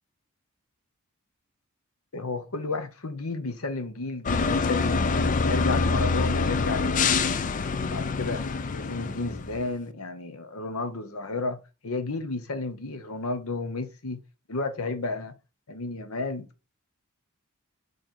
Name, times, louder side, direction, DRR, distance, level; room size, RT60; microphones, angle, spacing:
voice 1, 2.1-7.3 7.9-8.4 8.7-14.2 14.5-15.3 15.7-16.5, left 3 dB, 85° left, 1.0 m, -32 dB
sound 1, 4.3-9.7, left 4 dB, 35° left, 0.4 m, -25 dB
6.5 x 3.3 x 4.4 m
head